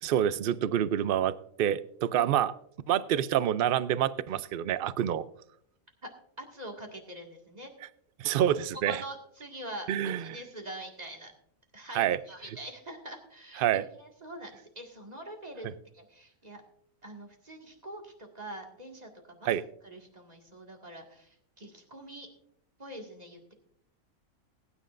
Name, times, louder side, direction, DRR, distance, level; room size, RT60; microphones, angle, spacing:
voice 1, 0.0-2.5 2.9-5.2 8.2-9.0 9.9-10.2 11.9-12.2 13.6-13.8 19.4-19.6, right 10 dB, 70° right, 16 dB, 0.5 m, -27 dB
voice 2, 6.4-7.7 8.7-11.3 11.7-16.6 17.0-22.3 22.8-23.5, right 1 dB, 30° right, 1 dB, 2.1 m, -44 dB
20.5 x 9.8 x 2.5 m, 0.68 s
omnidirectional pair, 1.5 m